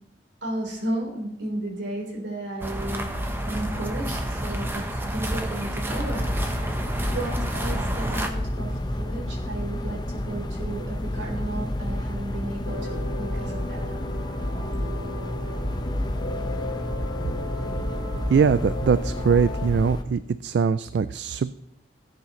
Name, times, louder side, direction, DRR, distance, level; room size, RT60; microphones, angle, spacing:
voice 1, 0.4-3.1 3.5-6.7 7.1-13.9, right 1 dB, 85° right, -1 dB, 3.8 m, -34 dB
sound 1, 2.6-8.3, right 1 dB, 10° right, 0.9 m, -29 dB
sound 2, 5.9-20.0, left 1 dB, 25° left, 0.7 m, -30 dB
sound 3, 12.7-19.7, left 2 dB, 65° left, 1.3 m, -37 dB
voice 2, 18.3-21.5, right 6 dB, 70° right, 14 dB, 0.3 m, -22 dB
17.0 x 8.4 x 3.1 m, 0.84 s
head